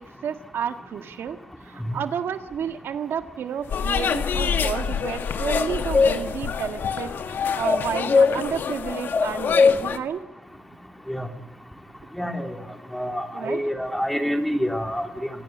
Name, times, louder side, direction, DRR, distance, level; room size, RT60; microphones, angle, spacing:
voice 1, 0.2-1.4 1.6-10.2 13.3-13.6, right 8 dB, 70° right, 8 dB, 1.6 m, -31 dB
sound 1, 3.6-8.7, left 6 dB, 75° left, 4.3 m, -42 dB
sound 2, 3.7-10.0, left 7 dB, 55° left, 1.7 m, -27 dB
sound 3, 5.5-6.1 7.6-8.3 9.1-9.8, left 4 dB, 30° left, 1.3 m, -18 dB
voice 2, 12.2-12.6 12.9-15.3, equal, 5° left, 5 dB, 2.5 m, -27 dB
26.5 x 17.5 x 8.5 m, 0.93 s
wide cardioid pair, 160°, 4 cm